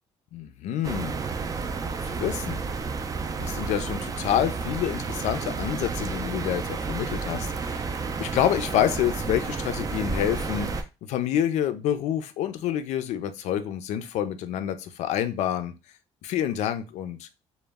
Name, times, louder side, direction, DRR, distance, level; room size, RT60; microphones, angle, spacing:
voice 1, 0.3-1.2 2.0-2.6 3.4-7.8 8.2-15.7 16.2-17.3, left 10 dB, 75° left, 10 dB, 0.4 m, -28 dB
sound 1, 0.8-10.8, right 4 dB, 30° right, 0.3 m, -31 dB
2.1 x 2.0 x 3.3 m, 0.28 s
cardioid pair, 85°, 12 cm